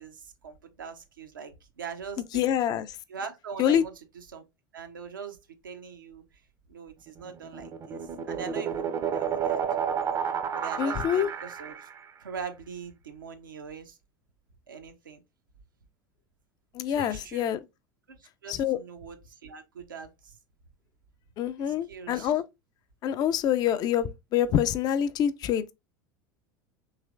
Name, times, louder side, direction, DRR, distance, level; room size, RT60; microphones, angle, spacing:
voice 1, 0.0-2.5 3.1-4.4 4.7-5.4 5.6-6.2 6.7-9.9 10.5-11.9 12.2-14.0 14.7-15.2 16.8-17.5 18.1-20.4 21.7-22.3, right 6 dB, 80° right, 0.5 m, -42 dB
voice 2, 2.3-2.9 3.6-3.8 10.8-11.3 16.7-17.6 18.5-18.8 21.4-22.4 23.0-25.7, left 10 dB, 40° left, 0.3 m, -26 dB
sound 1, 7.3-12.1, right 7 dB, 30° right, 0.4 m, -31 dB
3.1 x 3.0 x 2.4 m
figure-of-eight pair, 80°, 11 cm